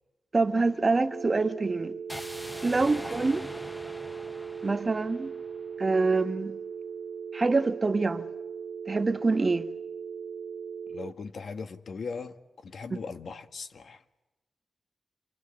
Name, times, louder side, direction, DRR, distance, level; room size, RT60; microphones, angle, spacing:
voice 1, 0.3-1.9 2.6-3.4 4.6-5.3 5.8-6.6 7.3-8.3 8.9-9.7 12.9-13.0, right 3 dB, 40° right, 1.7 m, -26 dB
sound 1, 1.1-11.1, right 6 dB, 75° right, 2.2 m, -39 dB
sound 2, 2.1-6.1, left 1 dB, 10° left, 1.2 m, -43 dB
voice 2, 2.9-3.3 10.9-14.0, left 5 dB, 75° left, 1.8 m, -40 dB
28.0 x 23.5 x 8.6 m
cardioid pair, 70°, 0 cm